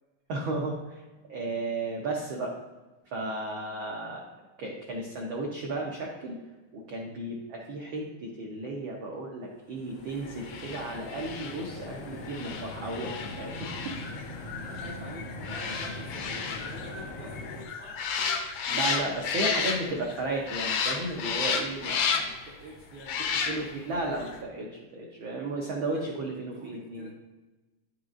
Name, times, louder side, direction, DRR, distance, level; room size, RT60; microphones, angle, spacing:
voice 1, 0.3-1.0 1.3-2.5 3.1-4.3 4.6-6.4 6.7-13.9 18.7-22.3 23.5-27.1, right 2 dB, 80° right, -2 dB, 1.1 m, -34 dB
sound 1, 9.6-17.6, left 2 dB, 65° left, 1.0 m, -41 dB
sound 2, 10.4-20.2 20.5-22.5 23.0-23.9 24.2-24.3, left 6 dB, 85° left, 1.3 m, -32 dB
voice 2, 14.6-18.9 22.2-23.7 25.7-27.1, right 2 dB, 65° right, -4 dB, 1.3 m, -47 dB
9.5 x 4.9 x 2.5 m, 1.2 s
omnidirectional pair, 3.4 m